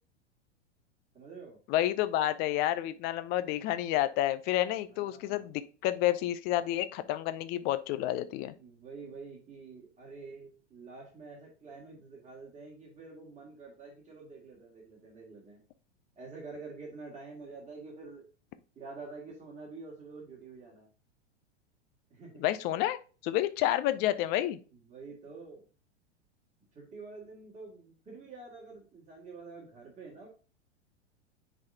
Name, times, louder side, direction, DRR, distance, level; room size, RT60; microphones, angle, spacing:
voice 1, 1.1-1.6 4.9-5.5 8.6-15.6 16.2-18.2 18.8-20.9 22.1-22.4 24.7-25.6 26.7-30.3, right 4 dB, 20° right, -3 dB, 2.4 m, -47 dB
voice 2, 1.7-8.5 22.4-23.0 23.2-24.6, left 13 dB, 30° left, 13 dB, 0.5 m, -29 dB
9.5 x 4.2 x 2.8 m, 0.36 s
figure-of-eight pair, 95°, 35 cm